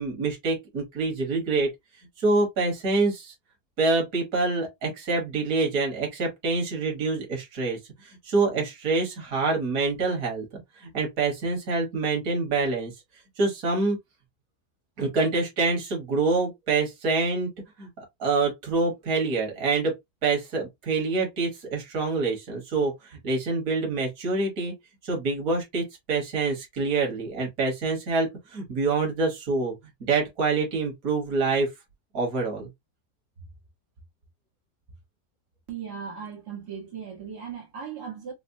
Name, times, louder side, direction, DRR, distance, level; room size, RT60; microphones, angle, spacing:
voice 1, 0.0-1.7 2.2-3.3 3.8-12.9 13.4-14.0 15.0-17.5 17.8-17.9 18.2-19.9 20.2-24.7 25.0-31.7 32.1-32.7, right 3 dB, 60° right, 1.8 m, -26 dB
voice 2, 35.7-38.3, right 7 dB, 90° right, 1.9 m, -37 dB
5.0 x 2.0 x 2.6 m
omnidirectional pair, 1.7 m